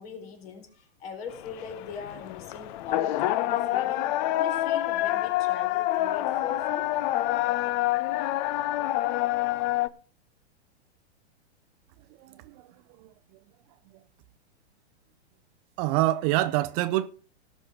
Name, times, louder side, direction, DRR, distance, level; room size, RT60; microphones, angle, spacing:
voice 1, 0.0-6.9, left 6 dB, 60° left, 4.4 m, -41 dB
sound 1, 1.3-9.9, left 15 dB, 40° left, 0.6 m, -27 dB
voice 2, 12.2-12.7 13.0-13.1 15.8-17.1, right 16 dB, 35° right, 0.6 m, -26 dB
18.0 x 6.3 x 4.6 m
hypercardioid pair, 135°, 34 cm